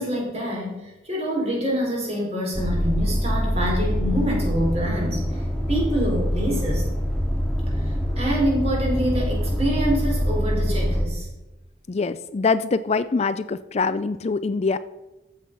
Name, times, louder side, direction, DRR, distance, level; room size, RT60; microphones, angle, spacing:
voice 1, 0.0-6.8 7.8-11.3, equal, 35° right, -1 dB, 4.4 m, -26 dB
sound 1, 2.5-11.1, equal, 5° left, 2.1 m, -24 dB
voice 2, 11.9-14.8, left 4 dB, 35° left, 14 dB, 0.4 m, -24 dB
14.0 x 7.4 x 5.4 m, 1.0 s
head